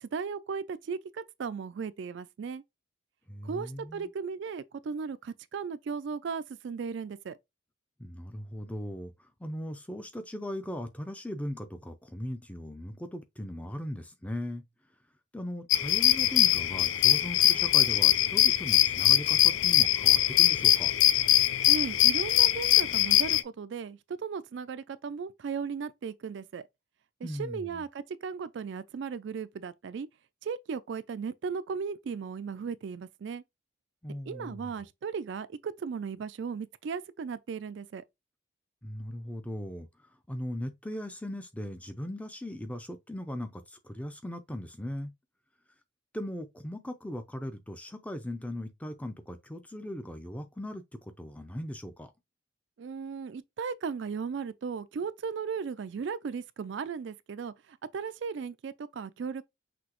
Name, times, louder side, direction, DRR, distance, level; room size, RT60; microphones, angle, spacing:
voice 1, 0.0-2.6 3.4-7.4 21.7-26.6 27.2-30.1 30.4-33.4 34.3-38.0 52.8-59.4, right 5 dB, 65° right, 0.3 m, -36 dB
voice 2, 3.3-4.1 8.0-14.6 15.3-20.9 27.2-27.8 34.0-34.7 38.8-39.9 40.3-45.1 46.1-52.1, left 1 dB, 5° left, 0.5 m, -38 dB
sound 1, 15.7-23.4, left 13 dB, 80° left, 0.4 m, -22 dB
6.0 x 2.8 x 3.0 m
head